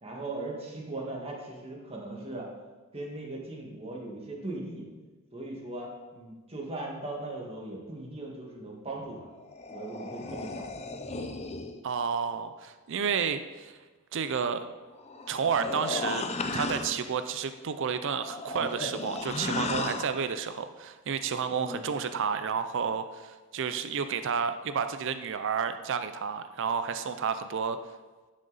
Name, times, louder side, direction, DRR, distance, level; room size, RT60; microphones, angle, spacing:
voice 1, 0.0-2.5 2.9-4.9 5.3-9.3 9.7-10.7 21.5-21.8, right 2 dB, 25° right, -1 dB, 1.7 m, -39 dB
sound 1, 9.2-11.8 14.9-17.1 18.1-20.2, left 3 dB, 30° left, 0.6 m, -35 dB
voice 2, 11.8-13.8 14.1-14.6 15.3-16.3 16.5-27.8, right 6 dB, 60° right, 10 dB, 0.5 m, -31 dB
10.5 x 6.4 x 4.0 m, 1.3 s
head